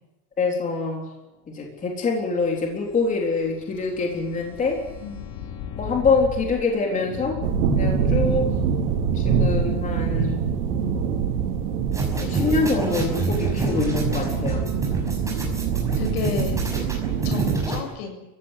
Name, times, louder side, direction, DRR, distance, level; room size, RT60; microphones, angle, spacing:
voice 1, 0.4-1.0 1.5-4.8 5.8-7.4 7.7-8.5 9.2-10.5 12.2-14.7, left 4 dB, 15° left, 0 dB, 3.7 m, -25 dB
sound 1, 2.2-8.6, left 8 dB, 50° left, 4.0 m, -38 dB
voice 2, 5.0-5.6 13.7-14.5 16.0-16.6 17.2-18.2, left 5 dB, 75° left, 5 dB, 7.6 m, -33 dB
sound 2, 7.4-17.6, right 6 dB, 85° right, 4.6 m, -24 dB
sound 3, 11.9-17.8, right 3 dB, 5° right, 5.9 m, -28 dB
29.5 x 16.0 x 10.0 m, 0.97 s
supercardioid pair, 170°, 45 cm